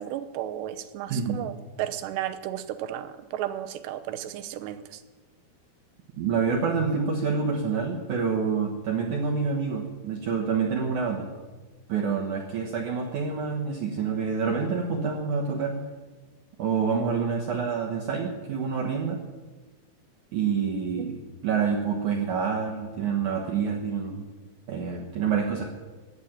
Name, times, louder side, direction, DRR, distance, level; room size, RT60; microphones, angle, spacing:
voice 1, 0.0-5.0 21.0-21.1, right 12 dB, 85° right, 12 dB, 3.0 m, -34 dB
voice 2, 1.1-1.4 6.2-11.3 11.9-15.8 16.6-19.2 20.3-21.2 21.4-24.3 24.7-25.7, right 5 dB, 65° right, 0 dB, 2.1 m, -27 dB
14.5 x 10.0 x 8.8 m, 1.3 s
omnidirectional pair, 4.9 m